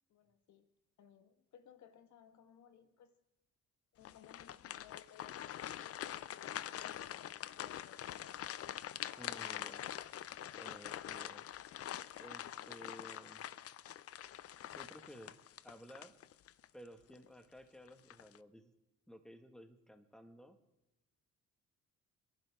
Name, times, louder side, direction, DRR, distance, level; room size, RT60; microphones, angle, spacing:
voice 1, 0.1-0.7 1.0-3.2 3.9-8.4, left 8 dB, 70° left, 10 dB, 1.3 m, -62 dB
sound 1, 4.0-16.7 17.1-17.3 17.9-18.4, left 11 dB, 50° left, 0.5 m, -45 dB
voice 2, 9.2-9.9 10.6-11.4 12.2-13.5 14.7-15.4 15.6-16.1 16.7-18.7 19.1-20.6, equal, ahead, 7 dB, 1.6 m, -55 dB
28.5 x 11.0 x 3.5 m, 0.98 s
cardioid pair, 90°, 30 cm